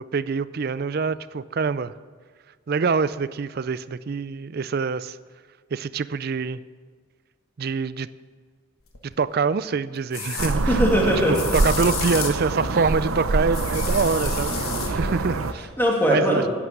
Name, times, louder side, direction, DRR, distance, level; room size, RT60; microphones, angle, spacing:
voice 1, 0.0-1.9 2.7-5.2 5.7-6.6 7.6-8.1 9.0-10.8 11.3-14.6 14.9-15.7 16.1-16.4, right 5 dB, 45° right, 16 dB, 0.4 m, -25 dB
sound 1, 8.9-9.0 10.1-10.5 11.3-12.5 13.5-14.9, left 7 dB, 85° left, 1.5 m, -31 dB
sound 2, 10.4-15.5, right 2 dB, 85° right, 0.8 m, -25 dB
voice 2, 10.7-11.4 14.5-15.0 15.8-16.5, equal, 10° left, -1 dB, 2.2 m, -21 dB
11.0 x 9.4 x 7.8 m, 1.5 s
head